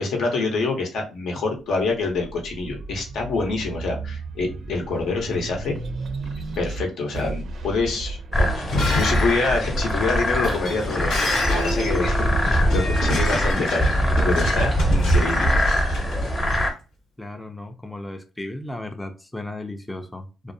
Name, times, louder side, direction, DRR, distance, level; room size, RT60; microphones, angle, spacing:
voice 1, 0.0-5.8 6.6-8.6 8.9-13.9 14.2-15.5, left 3 dB, 75° left, 0.7 m, -26 dB
sound 1, 2.0-12.3 12.9-14.0, right 3 dB, 65° right, 0.4 m, -36 dB
sound 2, 8.3-16.7, equal, 25° left, 0.8 m, -22 dB
Shatter, 8.5-16.6, left 2 dB, 90° left, 1.1 m, -30 dB
voice 2, 17.2-20.5, left 1 dB, 10° left, 0.3 m, -35 dB
2.4 x 2.0 x 2.6 m
cardioid pair, 90°, 0 cm